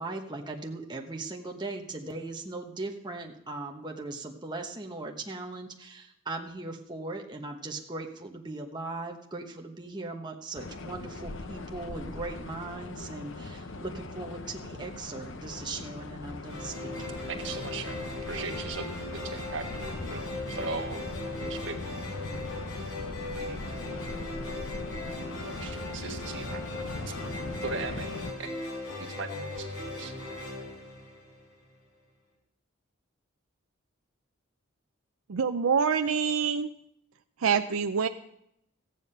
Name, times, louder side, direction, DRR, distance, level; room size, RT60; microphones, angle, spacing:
voice 1, 0.0-17.1, right 2 dB, 20° right, 2 dB, 1.0 m, -39 dB
sound 1, 10.5-28.3, left 2 dB, 60° left, 0.8 m, -40 dB
sound 2, 16.5-31.7, left 2 dB, 85° left, 4.3 m, -38 dB
voice 2, 17.3-21.1 21.4-21.8 23.3-24.1 25.4-26.6 27.0-27.1 27.6-28.5 29.0-29.7 29.9-30.1, right 3 dB, 55° right, 4 dB, 1.4 m, -39 dB
voice 3, 35.3-36.7 37.4-38.1, right 6 dB, 80° right, 8 dB, 0.5 m, -26 dB
14.5 x 9.4 x 5.5 m, 0.76 s
head